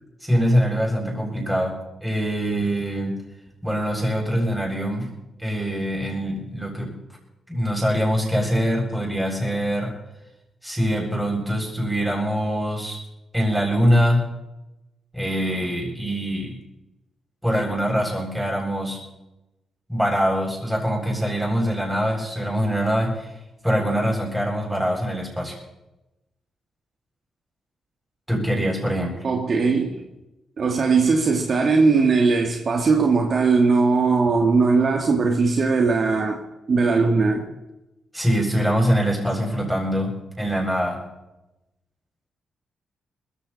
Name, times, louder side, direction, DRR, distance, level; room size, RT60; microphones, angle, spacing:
voice 1, 0.2-3.2 3.6-5.1 5.4-7.0 7.5-9.9 10.6-13.0 13.3-14.3 15.1-16.6 17.4-19.0 19.9-23.3 23.6-25.6 28.3-29.2 38.1-41.0, equal, 5° right, 7.7 m, -23 dB
voice 2, 29.2-30.1 30.6-36.4 36.7-37.5, right 4 dB, 50° right, 2.4 m, -19 dB
21.0 x 15.0 x 4.4 m
cardioid pair, 85°, 0 cm